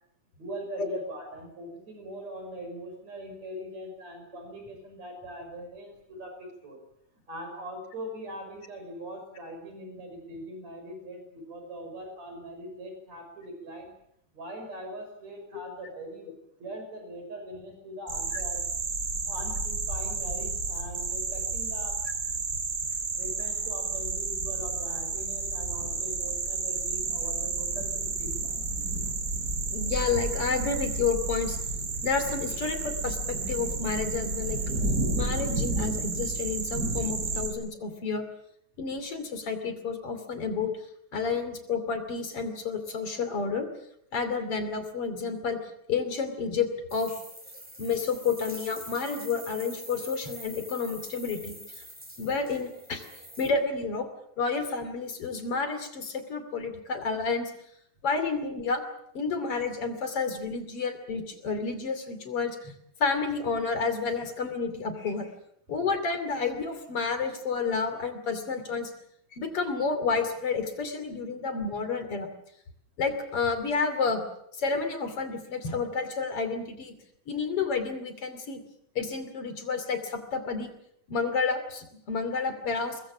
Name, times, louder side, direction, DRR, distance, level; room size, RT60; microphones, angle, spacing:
voice 1, 0.3-6.8 7.3-13.9 14.3-16.3 16.6-18.6 19.3-22.0 23.2-28.6, right 1 dB, 65° right, 4 dB, 6.8 m, -41 dB
sound 1, 18.1-37.5, right 3 dB, 30° right, 5.1 m, -31 dB
voice 2, 29.7-31.6 32.0-34.6 35.2-38.2 38.8-40.7 41.1-43.7 44.1-45.6 45.9-47.1 47.8-51.6 52.2-53.1 53.4-54.1 54.4-57.5 58.0-58.8 59.1-62.7 63.0-65.3 65.7-68.9 69.3-72.3 73.0-74.2 74.5-76.9 77.3-78.6 79.0-80.7 81.1-83.0, left 5 dB, 50° left, 8 dB, 3.6 m, -30 dB
sound 2, 46.9-53.5, equal, 5° right, 2.8 m, -45 dB
23.5 x 21.5 x 7.4 m, 0.73 s
omnidirectional pair, 3.3 m